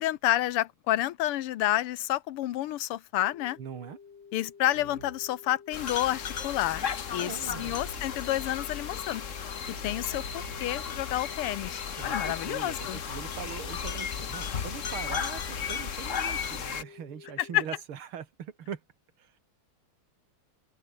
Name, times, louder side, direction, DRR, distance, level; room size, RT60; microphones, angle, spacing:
voice 1, 0.0-3.6 4.3-6.8 7.1-7.3 7.6-9.3 9.7-13.0 17.5-17.6, left 14 dB, 85° left, 1.8 m, -29 dB
sound 1, 3.2-17.6, left 6 dB, 55° left, 2.9 m, -51 dB
voice 2, 3.6-4.0 7.1-7.7 12.0-18.8 19.2-19.4, right 8 dB, 70° right, 2.5 m, -41 dB
Keyboard (musical), 4.7-5.4 6.8-8.4 9.6-16.7, right 7 dB, 90° right, 3.0 m, -52 dB
sound 2, 5.7-16.8, left 7 dB, 40° left, 1.3 m, -35 dB
open air
omnidirectional pair, 2.4 m